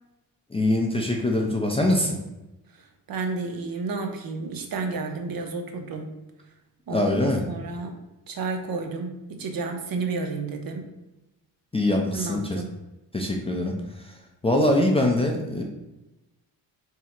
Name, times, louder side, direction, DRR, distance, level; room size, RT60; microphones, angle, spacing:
voice 1, 0.5-2.2 6.9-7.4 11.7-12.6 13.1-13.7 14.4-15.6, left 1 dB, 15° left, 0 dB, 0.4 m, -23 dB
voice 2, 3.1-6.1 6.9-7.9 8.3-10.9 12.1-12.7, right 4 dB, 55° right, 5 dB, 0.7 m, -31 dB
3.6 x 2.0 x 4.3 m, 1.0 s
cardioid pair, 95°, 43 cm